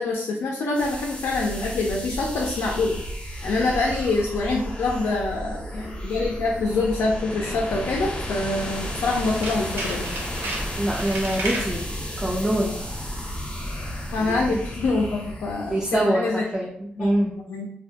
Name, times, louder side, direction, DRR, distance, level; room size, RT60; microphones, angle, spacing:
voice 1, 0.0-3.0 3.4-10.1 14.1-16.4 17.0-17.1 17.5-17.7, left 3 dB, 85° left, -1 dB, 0.4 m, -25 dB
sound 1, 0.7-16.1, equal, 30° left, 0.7 m, -33 dB
Tools, 9.0-11.8 12.3-12.6 12.9-13.0, right 1 dB, 75° right, 0.8 m, -33 dB
voice 2, 10.4-11.9 12.2-12.8 14.2-14.6 15.7-17.3, right 1 dB, 15° right, -2 dB, 0.3 m, -25 dB
2.3 x 2.1 x 2.7 m, 0.73 s
wide cardioid pair, 105°, 4 cm